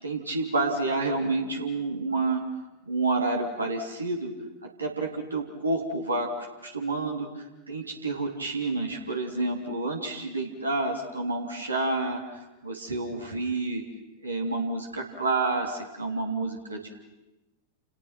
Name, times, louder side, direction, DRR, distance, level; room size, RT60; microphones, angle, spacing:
voice 1, 0.0-2.4 2.8-4.3 4.6-12.2 12.6-13.8 14.2-16.9, right 3 dB, 80° right, 1 dB, 3.5 m, -29 dB
29.5 x 29.5 x 6.1 m, 0.99 s
figure-of-eight pair, 90°, 0 cm